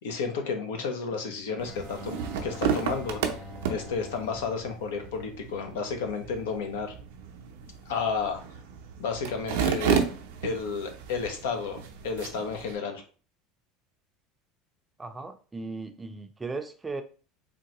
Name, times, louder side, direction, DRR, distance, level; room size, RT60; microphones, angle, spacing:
voice 1, 0.0-2.2 2.4-3.4 3.7-6.9 7.9-8.4 9.0-10.0 10.4-13.0, left 5 dB, 85° left, 5 dB, 0.7 m, -32 dB
Bowed string instrument, 1.5-5.8, left 4 dB, 30° left, 0.9 m, -47 dB
sound 1, 1.6-12.8, right 7 dB, 80° right, 0.5 m, -33 dB
voice 2, 15.0-17.0, right 3 dB, 15° right, 7 dB, 0.4 m, -37 dB
3.7 x 2.2 x 2.9 m, 0.38 s
supercardioid pair, 95°, 0 cm